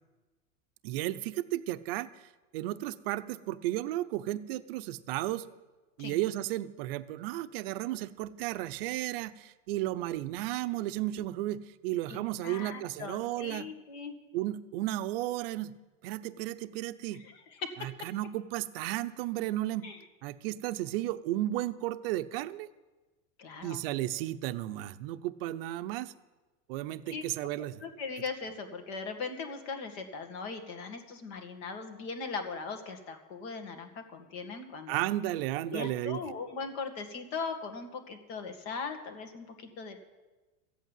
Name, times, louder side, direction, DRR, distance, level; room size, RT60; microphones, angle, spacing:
voice 1, 0.8-2.1 2.5-5.4 6.0-13.7 14.3-15.7 16.0-17.2 17.8-19.9 20.2-22.7 23.6-26.1 26.7-27.8 34.9-36.2, right 15 dB, 45° right, 11 dB, 0.7 m, -34 dB
voice 2, 12.1-14.1 17.1-17.7 19.8-20.0 23.4-23.8 27.1-27.2 27.8-35.1 35.7-40.0, left 4 dB, 50° left, 6 dB, 2.1 m, -39 dB
14.5 x 8.3 x 9.0 m, 1.2 s
supercardioid pair, 165°, 40 cm